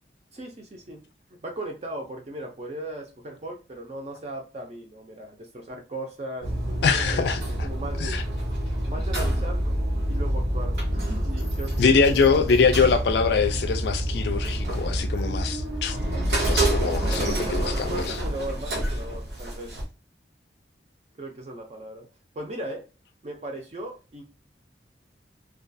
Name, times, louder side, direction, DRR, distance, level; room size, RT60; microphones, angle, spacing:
voice 1, 0.3-1.0 1.4-7.2 7.6-8.2 8.9-9.8 10.1-12.5 17.4-19.8 21.2-22.1 22.4-22.9 23.2-24.2, right 1 dB, 35° right, 0.4 m, -37 dB
sound 1, 6.4-19.8, right 1 dB, 65° right, 0.8 m, -27 dB
voice 2, 6.8-7.7 8.0-8.2 11.8-16.0 16.3-18.2, left 5 dB, 70° left, 0.3 m, -23 dB
2.3 x 2.2 x 2.5 m
head